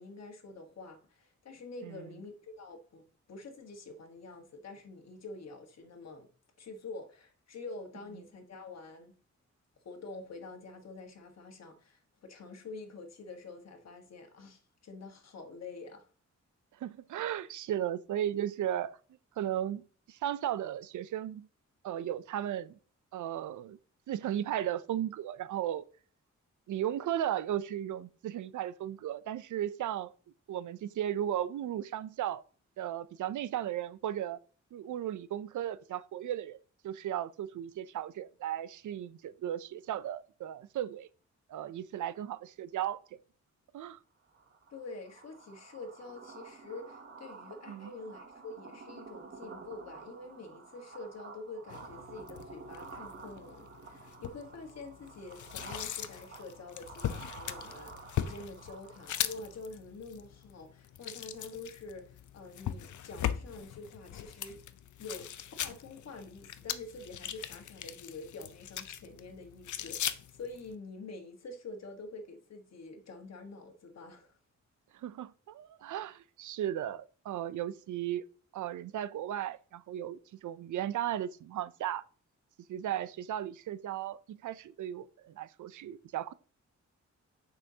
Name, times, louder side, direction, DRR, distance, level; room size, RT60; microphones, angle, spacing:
voice 1, 0.0-3.0 3.3-6.3 6.6-9.1 9.8-16.1 44.7-64.6 65.0-74.4, left 3 dB, 60° left, 1.4 m, -47 dB
voice 2, 16.8-19.0 19.4-21.5 21.8-22.8 23.1-23.8 24.1-25.8 26.7-30.1 30.5-32.4 32.8-34.4 34.7-36.6 36.8-41.1 41.5-43.2 43.7-44.0 47.7-47.9 74.9-78.2 78.5-82.0 82.7-86.3, right 11 dB, 85° right, 0.5 m, -35 dB
sound 1, 44.3-59.6, right 4 dB, 40° right, 0.9 m, -50 dB
sound 2, 51.7-70.7, left 10 dB, 80° left, 0.6 m, -40 dB
8.9 x 5.6 x 2.8 m
wide cardioid pair, 155°, 29 cm